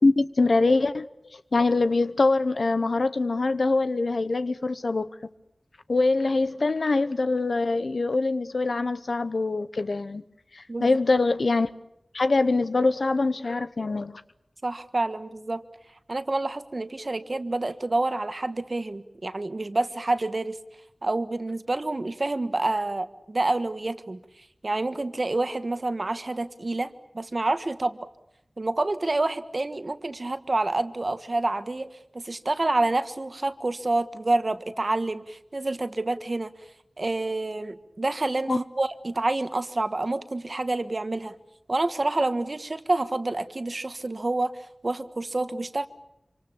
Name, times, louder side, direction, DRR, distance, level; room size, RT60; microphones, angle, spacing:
voice 1, 0.0-1.1 1.3-5.1 5.9-10.2 10.5-11.7 12.1-14.2 38.5-38.6, left 3 dB, 70° left, 1.0 m, -24 dB
voice 2, 14.6-15.6 16.1-20.6 21.0-28.1 28.6-36.5 37.0-41.3 41.7-45.9, right 2 dB, 50° right, 1.4 m, -28 dB
26.5 x 26.0 x 7.1 m
wide cardioid pair, 75°, 0 cm